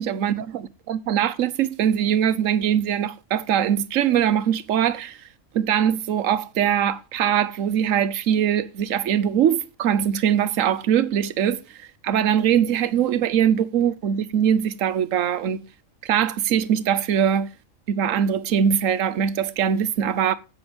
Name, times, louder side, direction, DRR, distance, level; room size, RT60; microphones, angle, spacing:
voice 1, 0.0-5.2 5.5-15.6 16.0-17.5 17.9-20.3, right 9 dB, 75° right, 1.2 m, -22 dB
9.6 x 8.7 x 5.3 m
omnidirectional pair, 1.4 m